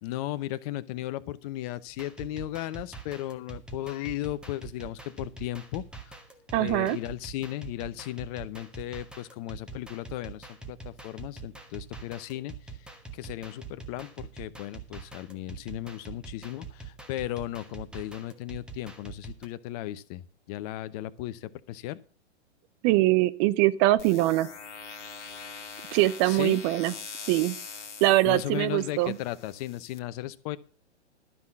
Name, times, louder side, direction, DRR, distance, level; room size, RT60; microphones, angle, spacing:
voice 1, 0.0-6.1 6.6-12.5 13.1-22.0 26.2-26.6 28.2-30.6, left 15 dB, 35° left, 15 dB, 0.7 m, -36 dB
sound 1, 1.9-19.5, right 4 dB, 5° right, 1.2 m, -44 dB
voice 2, 6.5-7.0 22.8-24.5 25.9-26.9 27.3-27.6 28.0-29.2, right 17 dB, 25° right, 16 dB, 0.5 m, -23 dB
sound 2, 24.0-30.0, left 5 dB, 85° left, 1.4 m, -43 dB
12.5 x 5.7 x 7.2 m, 0.38 s
hypercardioid pair, 120°, 35 cm